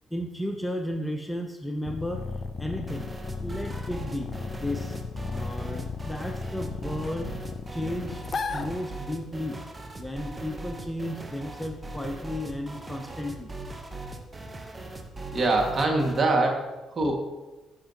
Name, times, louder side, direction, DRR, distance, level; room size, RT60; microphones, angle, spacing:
voice 1, 0.1-2.3 2.6-3.1 3.4-5.0 5.3-7.3 7.7-9.6 10.0-13.5, left 1 dB, 10° left, 5 dB, 0.7 m, -34 dB
sound 1, 1.8-9.3, left 5 dB, 45° left, 0.5 m, -35 dB
sound 2, 2.9-16.3, right 2 dB, 25° right, 1.0 m, -40 dB
voice 2, 15.3-17.2, right 2 dB, 40° right, 1 dB, 2.0 m, -24 dB
11.5 x 4.9 x 3.0 m, 1.1 s
hypercardioid pair, 45°, 0 cm